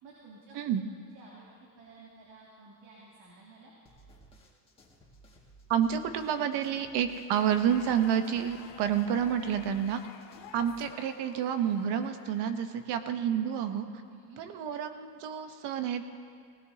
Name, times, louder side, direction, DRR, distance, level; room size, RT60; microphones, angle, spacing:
voice 1, 0.0-0.9 1.1-1.5 1.8-3.7 14.1-14.4, right 3 dB, 80° right, -6 dB, 3.0 m, -53 dB
sound 1, 3.8-11.2, right 2 dB, 10° left, 2.0 m, -58 dB
voice 2, 5.7-10.0 10.5-13.9 14.4-16.1, right 9 dB, 65° right, 8 dB, 1.1 m, -29 dB
sound 2, 7.3-13.4, left 12 dB, 75° left, 0.8 m, -52 dB
19.0 x 17.0 x 2.8 m, 2.2 s
cardioid pair, 135°, 44 cm